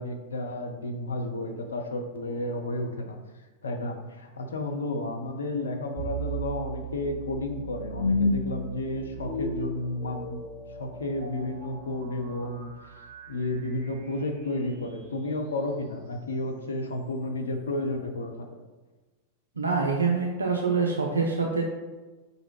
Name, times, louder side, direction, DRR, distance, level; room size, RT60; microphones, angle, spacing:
voice 1, 0.0-3.2 3.6-10.4 10.8-13.0 13.3-18.6, left 2 dB, 70° left, 5 dB, 0.5 m, -32 dB
sound 1, 6.0-15.1, left 1 dB, 40° right, 1.4 m, -34 dB
voice 2, 19.6-21.6, right 4 dB, 75° right, 0 dB, 0.4 m, -25 dB
4.7 x 2.5 x 3.1 m, 1.2 s
figure-of-eight pair, 90°, 0 cm